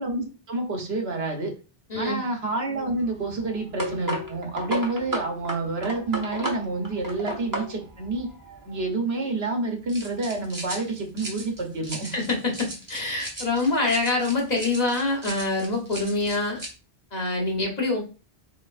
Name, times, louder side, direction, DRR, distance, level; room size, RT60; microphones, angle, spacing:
voice 1, 0.0-1.5 2.0-8.3 8.6-12.1, right 2 dB, 90° right, 3 dB, 1.3 m, -28 dB
voice 2, 1.9-2.2 12.1-16.6 17.1-18.0, left 2 dB, 40° left, 0 dB, 1.2 m, -25 dB
sound 1, 2.7-8.9 9.9-16.7, right 1 dB, 20° right, 1.0 m, -36 dB
4.4 x 4.0 x 2.5 m, 0.33 s
omnidirectional pair, 1.0 m